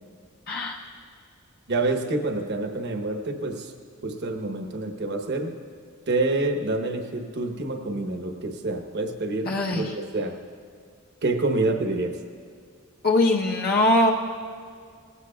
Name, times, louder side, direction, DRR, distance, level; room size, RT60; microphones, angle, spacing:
voice 1, 0.5-0.8 9.5-9.9 13.0-14.1, left 1 dB, 45° left, -1 dB, 0.9 m, -21 dB
voice 2, 1.7-3.7 4.0-5.5 6.1-10.4 11.2-12.1, right 2 dB, 55° right, 4 dB, 1.0 m, -27 dB
19.0 x 15.5 x 2.3 m, 2.1 s
head